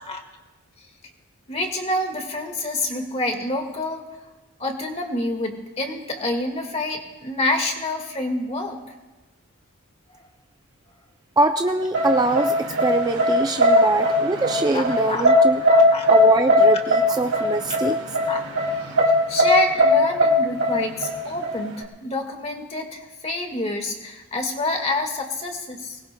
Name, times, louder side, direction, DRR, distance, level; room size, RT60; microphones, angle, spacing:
voice 1, 1.5-4.0 4.6-8.8 13.7-13.9 14.7-15.3 15.7-16.1 18.3-18.4 19.3-26.0, left 1 dB, 30° left, 3 dB, 1.7 m, -27 dB
voice 2, 11.4-15.6 16.1-18.1, right 2 dB, 15° right, 6 dB, 0.4 m, -23 dB
sound 1, 11.9-21.8, left 1 dB, 65° right, 2.4 m, -18 dB
23.0 x 20.0 x 2.2 m, 1.2 s
head